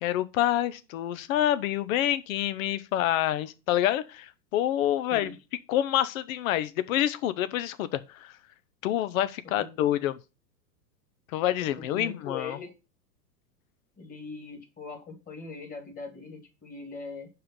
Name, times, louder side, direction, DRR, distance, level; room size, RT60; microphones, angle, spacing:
voice 1, 0.0-5.3 5.7-8.3 8.8-10.2 11.3-12.6, left 12 dB, 55° left, 0.8 m, -27 dB
voice 2, 11.6-12.7 14.0-17.3, left 4 dB, 15° left, 2.1 m, -41 dB
5.7 x 5.0 x 5.5 m
hypercardioid pair, 115°, 50 cm